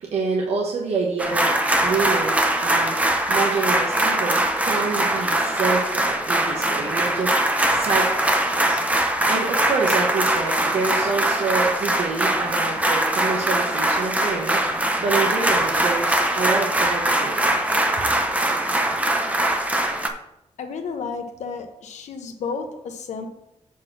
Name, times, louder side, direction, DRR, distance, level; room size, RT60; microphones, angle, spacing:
voice 1, 0.0-3.0 3.3-7.3 7.7-8.8 9.3-14.7 15.0-17.5, right 4 dB, 65° right, -2 dB, 1.2 m, -27 dB
sound 1, 1.2-20.1, right 1 dB, 10° right, 0.7 m, -22 dB
voice 2, 20.6-23.3, left 5 dB, 85° left, 6 dB, 1.0 m, -32 dB
7.5 x 4.2 x 6.0 m, 0.85 s
wide cardioid pair, 180°, 12 cm